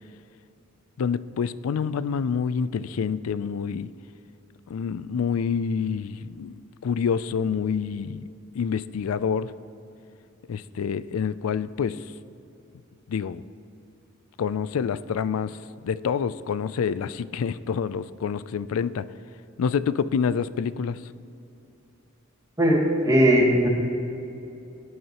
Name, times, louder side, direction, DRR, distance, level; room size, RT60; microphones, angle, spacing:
voice 1, 1.0-3.9 4.7-8.3 8.5-9.5 10.5-12.0 13.1-13.4 14.4-15.6 15.8-19.1 19.6-21.0, left 6 dB, 90° left, 16 dB, 0.4 m, -27 dB
voice 2, 22.6-23.7, equal, 15° right, -3 dB, 1.9 m, -19 dB
18.0 x 9.5 x 3.0 m, 2.8 s
head